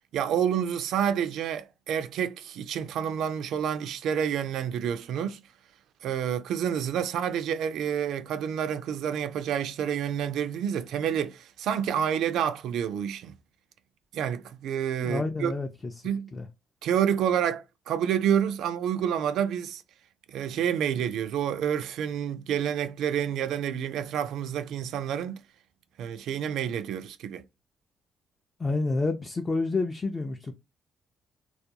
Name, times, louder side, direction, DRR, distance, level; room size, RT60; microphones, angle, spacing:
voice 1, 0.1-5.4 6.0-13.3 14.1-15.5 16.0-16.3 16.8-19.8 20.3-25.4 26.0-27.4, right 9 dB, 80° right, 0.3 m, -28 dB
voice 2, 15.0-15.9 16.3-16.5 28.6-30.5, left 3 dB, 30° left, 0.4 m, -29 dB
2.3 x 2.2 x 2.7 m
cardioid pair, 90°, 0 cm